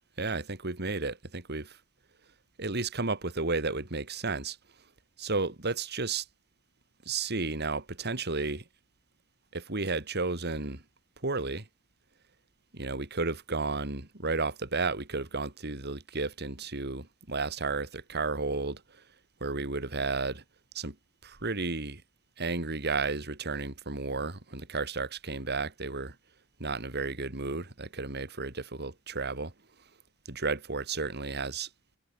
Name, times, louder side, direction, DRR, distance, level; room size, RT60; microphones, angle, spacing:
voice 1, 0.2-1.8 2.6-4.6 5.2-6.2 7.1-8.6 9.5-10.8 11.2-11.7 12.7-18.8 19.4-20.4 20.7-20.9 21.2-22.0 22.4-26.1 26.6-29.5 30.3-31.7, right 3 dB, 55° right, 2.8 m, -32 dB
head